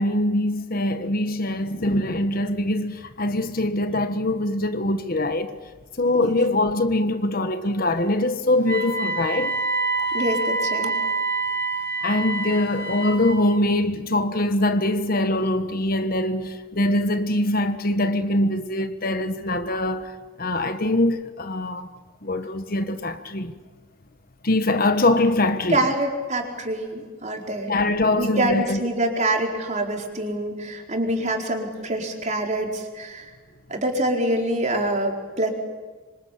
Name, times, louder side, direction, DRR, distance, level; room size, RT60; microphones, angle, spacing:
voice 1, 0.0-5.6 6.0-9.6 12.0-20.1 20.4-21.9 22.2-23.6 24.4-25.8 27.7-28.8, left 1 dB, 45° left, 1.3 m, -23 dB
Wind instrument woodwind instrument, 8.6-13.5, right 3 dB, 10° left, 5.4 m, -26 dB
voice 2, 10.1-10.9 25.7-27.7 28.1-33.3 33.7-35.5, right 1 dB, 35° right, 4.6 m, -25 dB
26.5 x 26.0 x 8.7 m
head